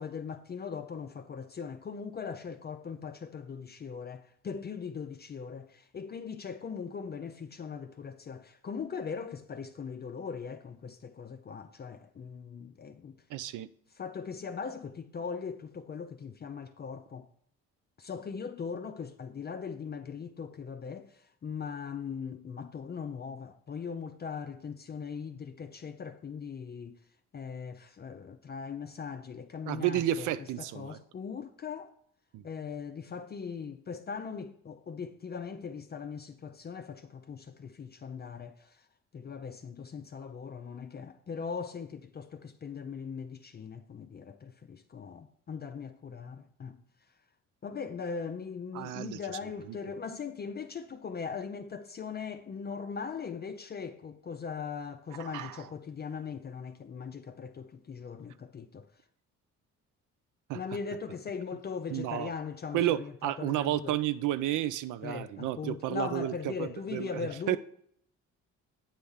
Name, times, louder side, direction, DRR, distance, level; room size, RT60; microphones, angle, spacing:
voice 1, 0.0-13.2 14.0-17.3 18.0-27.0 27.3-30.3 30.6-31.9 32.4-38.8 39.1-46.8 47.6-58.9 60.5-64.0 65.0-67.6, left 6 dB, 35° left, 0.5 m, -40 dB
voice 2, 13.3-13.7 29.7-31.0 32.3-32.4 48.7-49.2 49.6-49.8 55.2-55.7 60.5-60.6 61.9-62.3 62.7-67.6, right 13 dB, 85° right, 0.5 m, -32 dB
8.8 x 3.5 x 5.5 m
cardioid pair, 90°, 30 cm